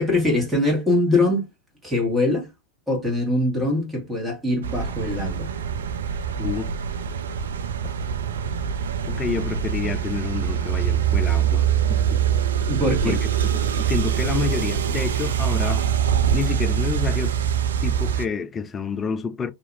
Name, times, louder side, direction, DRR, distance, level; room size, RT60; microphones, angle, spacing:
voice 1, 0.0-1.5 1.8-2.5 2.9-5.5 12.7-13.2, left 2 dB, 10° right, 1.6 m, -22 dB
sound 1, 4.6-18.3, right 9 dB, 65° right, 0.3 m, -24 dB
voice 2, 6.4-6.7 9.1-12.2 13.0-15.8 16.3-17.4 17.8-19.5, left 6 dB, 20° left, 0.4 m, -29 dB
2.8 x 2.7 x 2.6 m
figure-of-eight pair, 90°, 0 cm